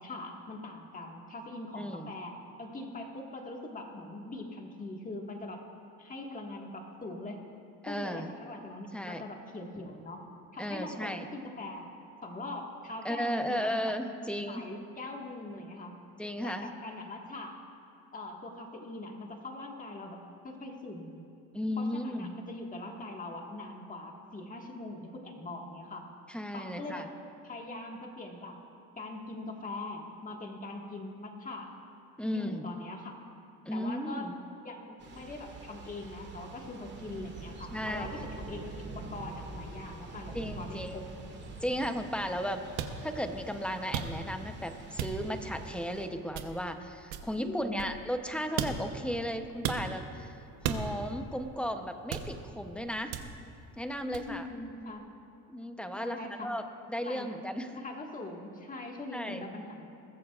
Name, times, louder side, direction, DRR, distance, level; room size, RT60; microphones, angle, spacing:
voice 1, 0.0-2.3 2.6-5.7 6.0-7.4 7.9-10.2 10.5-11.9 12.2-13.7 14.4-15.9 16.4-17.5 18.1-20.2 20.4-21.2 21.8-26.1 26.5-27.1 27.4-28.6 29.0-31.7 32.3-33.2 33.7-34.3 34.6-41.1 47.4-47.9 54.2-55.1 55.9-56.5 57.1-57.3 57.7-59.9, left 2 dB, 20° left, 1 dB, 1.7 m, -42 dB
voice 2, 1.7-2.1 7.8-8.3 8.9-9.2 10.6-11.3 13.0-14.7 16.2-16.7 21.5-22.3 26.3-27.1 32.2-32.7 33.7-34.4 37.7-38.1 40.3-41.1 41.6-42.6 43.0-50.3 50.6-53.1 53.8-54.5 55.5-56.6 56.9-57.7 59.1-59.4, equal, 5° left, 6 dB, 0.7 m, -35 dB
Thunder / Rain, 35.0-46.1, right 3 dB, 30° right, 2.0 m, -45 dB
sound 1, 42.8-43.0 43.9-44.4 45.0-45.4 46.3-46.7 47.1-48.2 48.6-49.0 49.6-49.9 50.6-51.1 52.1-52.6 53.1-53.5 54.1-54.3, right 7 dB, 75° right, 1.1 m, -35 dB
21.0 x 14.5 x 2.4 m, 2.5 s
cardioid pair, 120°, 38 cm